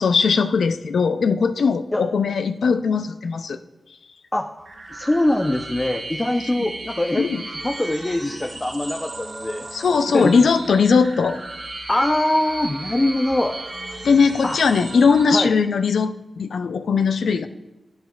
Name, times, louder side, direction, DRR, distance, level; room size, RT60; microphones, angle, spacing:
voice 1, 0.0-3.6 7.2-7.4 9.7-11.4 14.0-17.5, left 5 dB, 80° left, 10 dB, 0.4 m, -19 dB
sound 1, 4.6-15.2, right 2 dB, 60° right, 1.5 m, -35 dB
voice 2, 4.9-7.3 7.6-9.7 10.1-10.3 11.9-13.6 14.4-14.6 15.3-15.5, left 1 dB, 25° left, 4 dB, 0.5 m, -22 dB
10.5 x 8.8 x 2.3 m, 1.0 s
cardioid pair, 45°, 0 cm